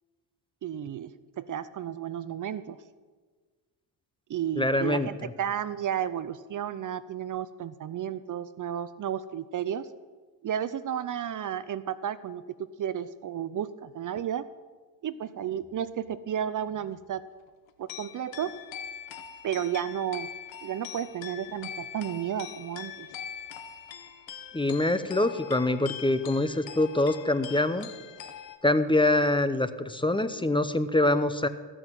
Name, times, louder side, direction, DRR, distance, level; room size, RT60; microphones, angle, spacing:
voice 1, 0.6-2.8 4.3-9.9 10.4-14.4 15.0-17.2 17.8-18.5 19.4-20.3 20.6-23.1, right 9 dB, 45° right, 15 dB, 0.6 m, -32 dB
voice 2, 4.6-5.3 24.5-27.9 28.6-31.5, left 2 dB, 10° left, 12 dB, 0.7 m, -25 dB
sound 1, 17.5-28.6, left 8 dB, 80° left, 1.3 m, -43 dB
15.5 x 6.2 x 9.0 m, 1.4 s
cardioid pair, 85°, 44 cm